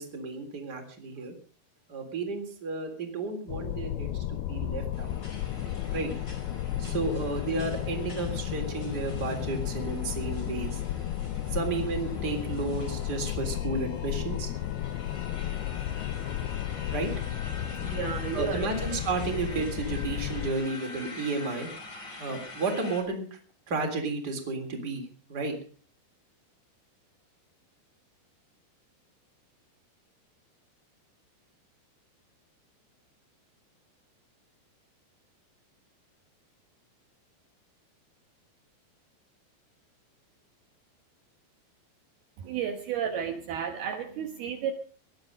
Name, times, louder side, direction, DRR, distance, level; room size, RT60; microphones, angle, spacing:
voice 1, 0.0-1.3 1.9-5.2 5.9-6.1 6.8-10.8 11.5-14.5 16.9-17.1 18.3-21.7 22.2-23.4 23.7-25.6, right 3 dB, 25° right, 3 dB, 3.6 m, -32 dB
sound 1, 3.5-20.5, left 12 dB, 75° left, 2.6 m, -33 dB
sound 2, 4.9-23.0, left 2 dB, 25° left, 4.8 m, -45 dB
voice 2, 17.7-18.6 42.4-44.7, right 8 dB, 65° right, 5 dB, 3.0 m, -32 dB
19.5 x 13.0 x 5.2 m, 0.41 s
omnidirectional pair, 5.2 m